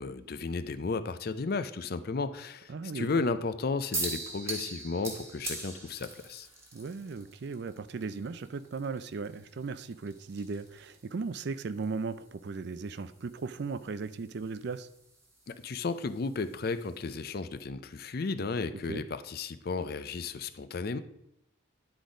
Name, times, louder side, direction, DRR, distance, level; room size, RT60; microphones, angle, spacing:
voice 1, 0.0-6.5 15.5-21.0, left 4 dB, 50° left, 12 dB, 0.5 m, -34 dB
voice 2, 2.7-3.2 6.7-14.9 18.7-19.0, right 4 dB, 55° right, 13 dB, 0.4 m, -37 dB
sound 1, 3.9-17.3, right 2 dB, 15° right, 1.5 m, -44 dB
10.0 x 4.0 x 4.9 m, 0.79 s
head